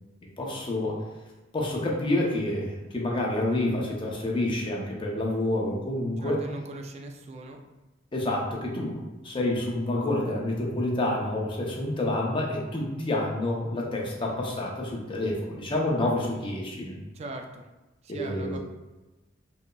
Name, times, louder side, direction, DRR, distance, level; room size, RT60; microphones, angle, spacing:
voice 1, 0.4-1.0 1.5-6.4 8.1-16.9 18.1-18.6, left 1 dB, 25° left, -2 dB, 0.6 m, -28 dB
voice 2, 6.2-7.6 17.1-17.6 18.0-18.6, right 2 dB, 35° right, 3 dB, 0.3 m, -40 dB
5.0 x 2.0 x 2.3 m, 1.1 s
head